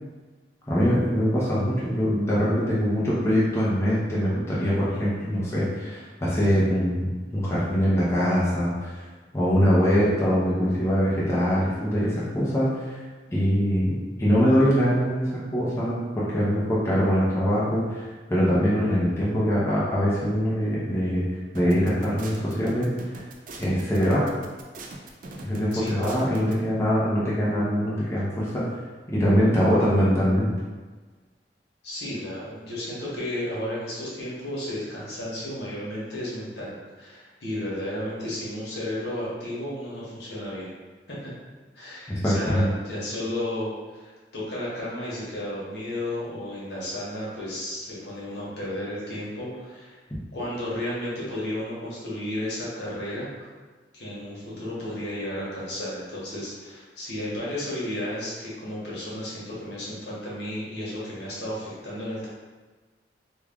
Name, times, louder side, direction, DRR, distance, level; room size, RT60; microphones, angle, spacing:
voice 1, 0.7-9.0 9.3-13.0 13.3-21.3 21.5-23.2 23.6-24.3 25.4-28.7 29.1-30.5 42.1-42.7, equal, 15° left, -9 dB, 0.7 m, -23 dB
sound 1, 21.5-26.5, right 2 dB, 50° right, 0.4 m, -41 dB
voice 2, 31.8-40.7 41.1-41.3 41.7-50.0 50.3-53.3 53.9-62.3, left 1 dB, 70° left, -7 dB, 1.1 m, -33 dB
3.1 x 2.3 x 3.5 m, 1.3 s
head